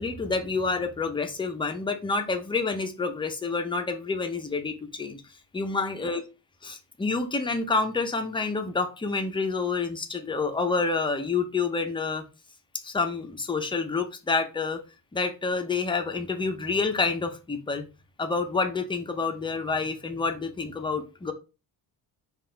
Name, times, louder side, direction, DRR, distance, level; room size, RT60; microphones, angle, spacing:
voice 1, 0.0-5.2 5.5-6.2 6.6-12.2 12.8-14.8 15.1-17.9 18.2-21.3, left 4 dB, 15° left, 5 dB, 0.5 m, -28 dB
3.8 x 2.4 x 3.8 m, 0.30 s
cardioid pair, 145°, 39 cm